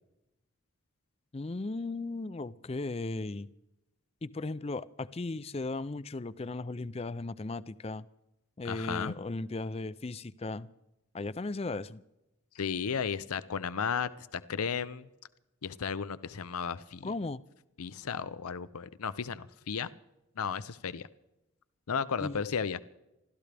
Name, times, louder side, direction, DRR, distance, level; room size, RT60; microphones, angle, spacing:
voice 1, 1.3-3.5 4.2-8.1 8.6-10.7 11.1-12.0 17.0-17.4 22.2-22.4, left 2 dB, 25° left, 16 dB, 0.4 m, -36 dB
voice 2, 8.6-9.1 12.6-15.1 15.6-17.1 17.8-19.9 20.4-21.1 21.9-22.8, left 6 dB, 90° left, 15 dB, 0.6 m, -34 dB
27.5 x 13.5 x 3.4 m, 0.91 s
head